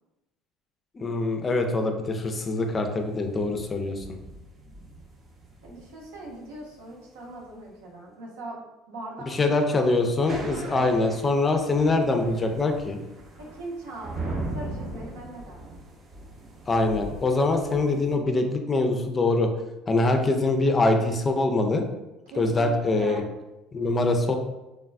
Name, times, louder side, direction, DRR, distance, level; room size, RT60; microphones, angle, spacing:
voice 1, 1.0-4.0 9.3-13.0 16.7-19.5 19.9-21.8 22.4-23.2 23.7-24.3, left 2 dB, 30° left, 5 dB, 0.4 m, -24 dB
sound 1, 2.1-7.6 10.0-18.2, right 2 dB, 40° right, 0.7 m, -40 dB
voice 2, 5.6-9.5 10.5-10.9 13.4-15.7 22.3-23.2, right 2 dB, 75° right, -3 dB, 0.8 m, -40 dB
3.3 x 2.3 x 2.2 m, 1.0 s
hypercardioid pair, 60°, 0 cm